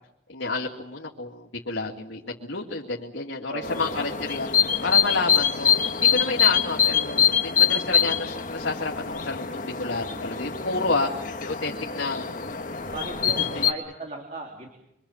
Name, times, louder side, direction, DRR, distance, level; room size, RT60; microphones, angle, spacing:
voice 1, 0.3-4.5 4.8-11.1 11.4-12.4 13.5-13.7, left 3 dB, 85° left, 0 dB, 2.5 m, -30 dB
voice 2, 3.5-4.0 10.7-11.0 12.9-14.7, right 2 dB, 35° right, 2 dB, 3.3 m, -37 dB
sound 1, 3.6-13.7, left 7 dB, 45° left, 1.6 m, -24 dB
26.0 x 24.5 x 7.3 m, 0.84 s
head